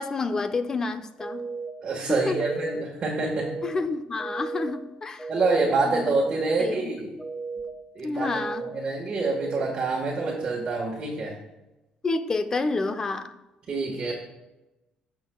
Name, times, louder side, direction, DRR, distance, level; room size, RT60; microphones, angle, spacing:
voice 1, 0.0-1.4 2.1-2.5 3.6-5.3 5.8-6.1 6.6-6.9 8.0-8.6 12.0-13.3, left 3 dB, 25° left, 10 dB, 0.6 m, -29 dB
sound 1, 1.2-1.7 2.2-2.7 3.2-3.7 4.2-4.7 5.2-5.7 6.2-6.7 7.2-7.7 8.2-8.7 9.2-9.7 10.2-10.7, right 4 dB, 5° left, 1.6 m, -34 dB
voice 2, 1.8-3.5 5.3-7.2 7.9-8.3 8.7-11.3 13.7-14.1, right 3 dB, 40° right, -4 dB, 1.5 m, -26 dB
16.0 x 6.1 x 2.3 m, 1.0 s
cardioid pair, 140°, 2 cm